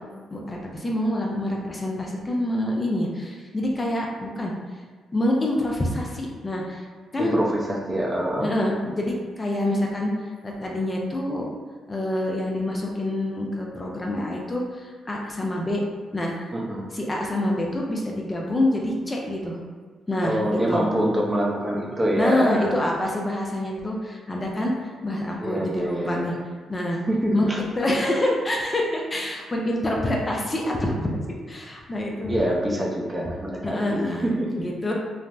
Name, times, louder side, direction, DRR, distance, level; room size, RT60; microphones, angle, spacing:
voice 1, 0.3-4.5 5.1-6.8 7.1-7.4 8.4-11.5 11.9-15.8 16.1-16.5 16.9-19.6 20.1-20.9 22.2-26.4 26.7-27.0 27.3-31.2 31.5-32.4 33.6-34.9, left 1 dB, 25° left, -1 dB, 0.5 m, -26 dB
voice 2, 7.9-8.5 16.5-16.9 20.2-22.7 25.4-26.3 27.1-27.6 32.3-34.8, right 1 dB, 25° right, -3 dB, 0.6 m, -25 dB
3.3 x 2.1 x 2.5 m, 1.5 s
cardioid pair, 70°, 0 cm